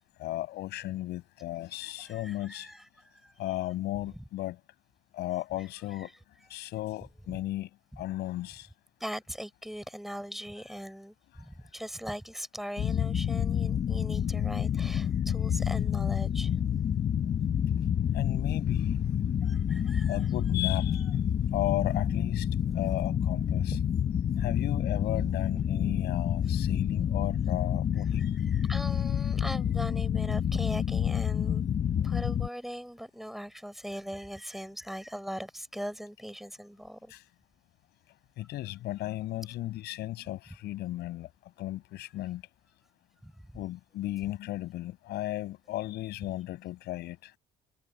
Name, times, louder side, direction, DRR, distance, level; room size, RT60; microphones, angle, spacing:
voice 1, 0.2-2.7 3.4-4.6 5.1-6.1 6.5-7.7 8.0-8.7 18.1-19.0 20.1-21.0 21.5-22.5 22.7-23.8 24.4-28.4 37.1-37.2 38.4-41.3 41.6-42.4 43.5-47.3, left 15 dB, 75° left, 7.3 m, -35 dB
voice 2, 1.9-3.7 4.2-4.3 5.9-6.1 6.6-6.7 7.3-7.4 9.0-16.6 19.4-20.2 23.7-23.8 28.5-31.6 32.0-37.1 43.2-43.3, equal, ahead, 5.9 m, -40 dB
sound 1, 12.8-32.5, left 9 dB, 45° left, 1.5 m, -28 dB
cardioid pair, 110°, 17 cm